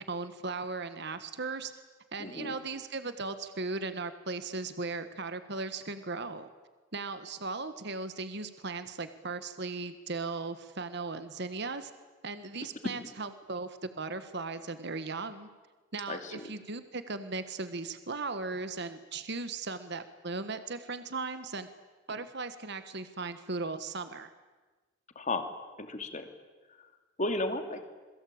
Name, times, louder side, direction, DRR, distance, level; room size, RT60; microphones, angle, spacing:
voice 1, 0.0-1.7 2.1-6.5 6.9-11.9 12.2-15.5 15.9-21.7 22.1-24.3, right 3 dB, 55° right, 10 dB, 1.5 m, -37 dB
voice 2, 2.2-2.5 16.1-16.4 25.2-25.5 25.8-26.3 26.8-26.9 27.2-27.9, left 2 dB, 40° left, 6 dB, 2.7 m, -34 dB
27.5 x 22.0 x 8.8 m, 1.3 s
head